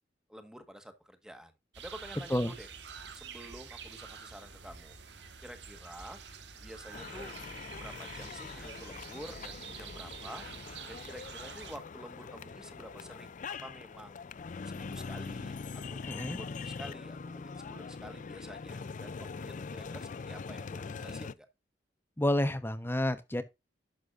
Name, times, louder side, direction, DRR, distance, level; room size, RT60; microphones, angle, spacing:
voice 1, 0.3-2.7 3.1-5.0 5.4-6.2 6.6-7.3 7.8-10.5 10.9-14.2 14.6-21.5, equal, 5° right, 1.5 m, -49 dB
sound 1, 1.7-11.8, right 6 dB, 80° right, 1.5 m, -47 dB
sound 2, 6.9-21.3, left 5 dB, 45° left, 0.4 m, -43 dB
voice 2, 16.1-16.4 22.2-23.4, left 1 dB, 15° left, 1.0 m, -29 dB
11.5 x 7.3 x 2.5 m
head